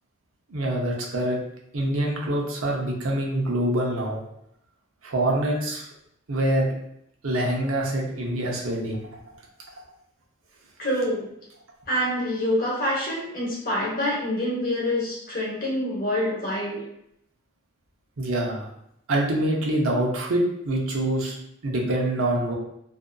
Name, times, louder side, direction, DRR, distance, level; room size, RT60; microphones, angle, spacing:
voice 1, 0.5-1.4 1.7-4.2 5.0-5.9 6.3-6.7 7.2-9.0 18.2-18.7 19.1-21.4 21.6-22.5, right 1 dB, 85° right, -1 dB, 0.7 m, -25 dB
voice 2, 10.8-11.3 11.9-16.8, left 1 dB, 45° left, -5 dB, 1.0 m, -26 dB
2.6 x 2.4 x 2.3 m, 0.76 s
head